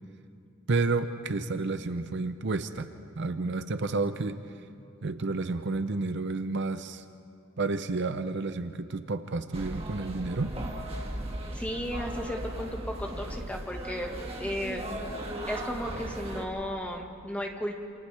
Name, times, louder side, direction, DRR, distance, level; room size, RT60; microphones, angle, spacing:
voice 1, 0.7-2.9 3.2-4.4 5.0-7.0 7.6-10.5, right 3 dB, 60° right, 10 dB, 0.7 m, -30 dB
sound 1, 9.5-16.5, right 1 dB, 30° right, 1.9 m, -37 dB
voice 2, 11.5-14.1 14.4-15.0 15.5-17.8, equal, 5° left, 1 dB, 1.6 m, -34 dB
28.5 x 27.0 x 3.4 m, 2.5 s
head